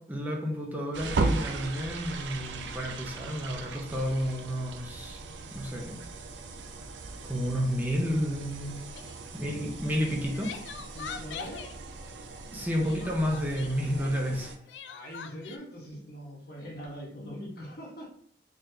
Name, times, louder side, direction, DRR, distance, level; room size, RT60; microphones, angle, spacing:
voice 1, 0.0-5.2 5.5-6.0 7.2-8.7 9.3-10.5 12.5-14.5, equal, 10° right, -1 dB, 0.6 m, -31 dB
sound 1, 0.9-14.6, right 3 dB, 75° right, 0.4 m, -37 dB
Crying sobbing, 8.9-9.2 10.0-11.7 12.8-13.8 14.7-15.6, left 6 dB, 75° left, 0.4 m, -42 dB
voice 2, 10.9-11.7 12.5-12.7 13.9-14.2 14.6-18.1, equal, 60° left, -2 dB, 1.1 m, -43 dB
3.9 x 3.3 x 2.7 m, 0.62 s
head